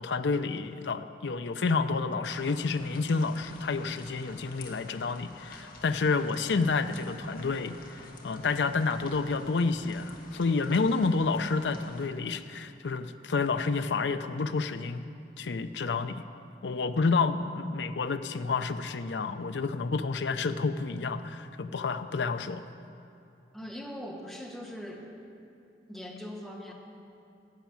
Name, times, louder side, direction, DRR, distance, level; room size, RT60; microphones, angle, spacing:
voice 1, 0.0-15.0 15.4-16.2 16.6-22.6, left 4 dB, 75° left, 10 dB, 0.5 m, -29 dB
sound 1, 2.2-12.1, left 2 dB, 50° left, 1.3 m, -49 dB
voice 2, 23.5-25.1 25.9-26.7, equal, ahead, -1 dB, 1.2 m, -41 dB
11.5 x 7.2 x 8.8 m, 2.6 s
head